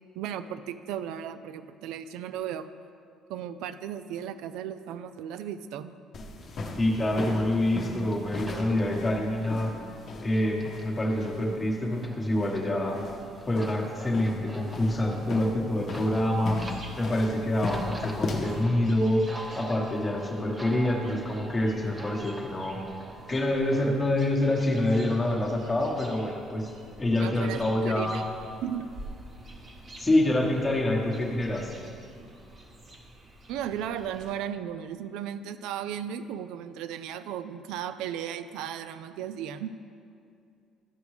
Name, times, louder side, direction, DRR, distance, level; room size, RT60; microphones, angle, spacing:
voice 1, 0.2-2.7 3.3-5.9 27.2-28.3 28.6-28.9 33.5-39.8, right 9 dB, 85° right, 11 dB, 0.3 m, -35 dB
sound 1, 6.1-18.6, left 3 dB, 40° left, 0.9 m, -37 dB
sound 2, 6.4-24.0, right 1 dB, 15° right, 0.7 m, -46 dB
voice 2, 6.8-9.7 10.2-13.0 13.5-16.6 17.0-19.3 19.6-22.8 23.3-26.7 27.0-28.2 30.0-31.7, left 1 dB, 15° left, -1 dB, 1.2 m, -26 dB
sound 3, 16.6-34.4, right 1 dB, 35° right, 1.1 m, -48 dB
13.0 x 5.1 x 3.2 m, 2.5 s
cardioid pair, 140°, 0 cm